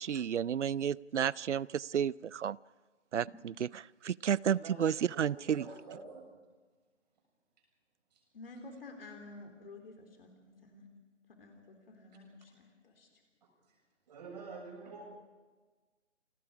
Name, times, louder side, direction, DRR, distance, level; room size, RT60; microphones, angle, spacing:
voice 1, 0.0-2.6 3.1-5.6, right 8 dB, 70° right, 24 dB, 0.5 m, -32 dB
voice 2, 4.4-4.8 5.2-6.3 8.1-8.2 13.4-13.5 14.1-15.0, right 4 dB, 35° right, 1 dB, 6.8 m, -47 dB
voice 3, 8.3-10.9 11.3-13.1, left 2 dB, 50° left, 3 dB, 3.6 m, -51 dB
28.5 x 20.0 x 5.0 m, 1.3 s
figure-of-eight pair, 160°, 36 cm